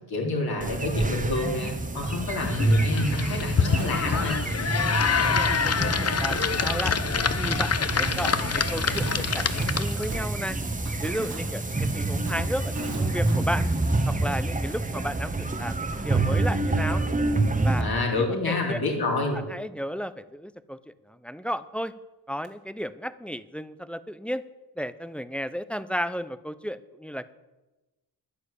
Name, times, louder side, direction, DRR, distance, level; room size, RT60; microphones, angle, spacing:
voice 1, 0.1-4.4 17.8-19.4, left 3 dB, 65° left, 0 dB, 3.8 m, -28 dB
sound 1, 0.6-17.8, right 2 dB, 20° right, 1.3 m, -27 dB
sound 2, 2.4-10.1, left 6 dB, 40° left, 0.9 m, -26 dB
Fireworks, 3.8-15.4 15.7-15.8 22.4-22.5, right 4 dB, 65° right, 2.3 m, -43 dB
voice 2, 5.2-7.0 7.4-10.6 11.0-13.7 14.1-17.0 17.6-17.9 18.2-18.8 19.3-21.9 22.3-24.4 24.8-27.3, equal, 5° left, 14 dB, 0.6 m, -34 dB
11.0 x 10.0 x 8.2 m, 1.1 s
cardioid pair, 80°, 40 cm